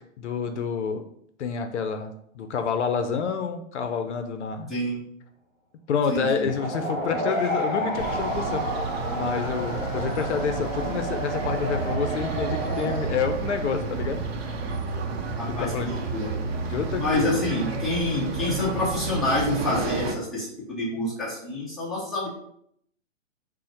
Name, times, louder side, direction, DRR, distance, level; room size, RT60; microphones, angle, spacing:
voice 1, 0.2-1.0 1.4-4.7 5.9-8.6 9.1-14.2 15.6-15.9 16.7-17.4, left 6 dB, 60° left, 7 dB, 0.6 m, -28 dB
voice 2, 6.1-6.5 15.4-16.3 16.9-22.3, left 1 dB, ahead, -8 dB, 0.6 m, -27 dB
sound 1, 6.4-13.0, equal, 25° left, 1.3 m, -31 dB
sound 2, 8.0-20.1, right 4 dB, 55° right, 0.7 m, -31 dB
3.7 x 2.1 x 4.3 m, 0.70 s
hypercardioid pair, 135°, 39 cm